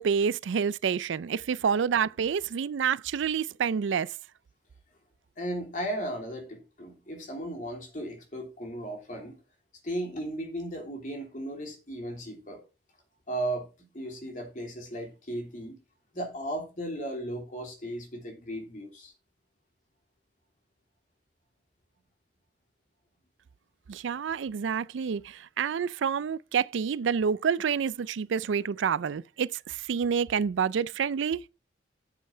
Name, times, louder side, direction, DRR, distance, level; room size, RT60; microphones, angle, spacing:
voice 1, 0.0-4.1 23.9-31.4, right 7 dB, 80° right, 0.4 m, -28 dB
voice 2, 5.4-9.4 9.8-12.6 13.3-15.8 16.1-19.1, right 1 dB, 45° left, 3.2 m, -36 dB
8.9 x 7.5 x 4.5 m
head